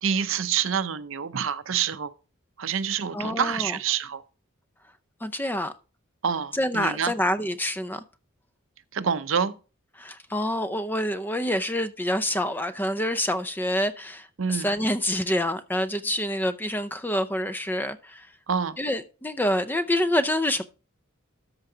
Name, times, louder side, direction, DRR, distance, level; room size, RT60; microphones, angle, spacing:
voice 1, 0.0-2.1 2.6-4.2 6.2-7.1 8.9-9.6 14.4-14.7 18.5-18.8, right 7 dB, 65° right, 0.6 m, -27 dB
voice 2, 3.1-3.8 5.2-5.7 6.5-8.0 10.0-18.3 18.8-20.6, left 1 dB, 10° left, 0.5 m, -27 dB
13.0 x 4.6 x 3.8 m
head